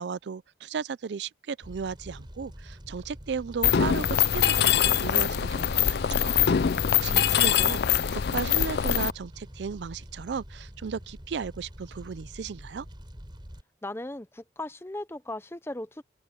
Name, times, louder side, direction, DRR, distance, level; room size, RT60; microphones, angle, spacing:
voice 1, 0.0-12.9, right 6 dB, 75° right, 0.4 m, -35 dB
Fire, 1.6-13.6, equal, 25° right, 4.8 m, -45 dB
Mechanisms, 3.6-9.1, left 9 dB, 60° left, 0.4 m, -23 dB
voice 2, 7.1-7.7 13.8-16.0, left 1 dB, 15° left, 0.7 m, -38 dB
open air
head